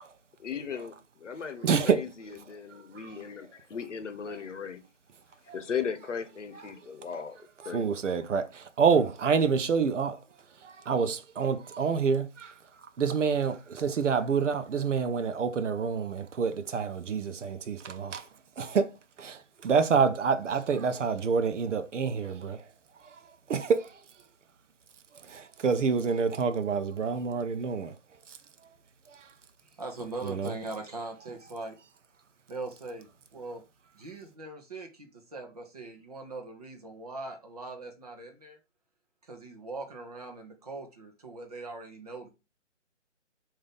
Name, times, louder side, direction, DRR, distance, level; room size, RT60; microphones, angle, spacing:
voice 1, 0.4-4.8 5.5-7.9, left 7 dB, 70° left, 0.9 m, -37 dB
voice 2, 1.6-2.0 5.5-5.6 7.7-10.2 10.6-12.5 13.0-18.3 18.6-18.9 19.2-22.6 23.5-23.9 25.3-27.9 30.2-30.5, right 5 dB, 70° right, 0.6 m, -27 dB
voice 3, 29.6-31.8 32.5-33.6 33.9-38.6 39.2-42.3, right 3 dB, 30° right, 0.7 m, -41 dB
3.8 x 2.7 x 3.4 m
hypercardioid pair, 160°, 38 cm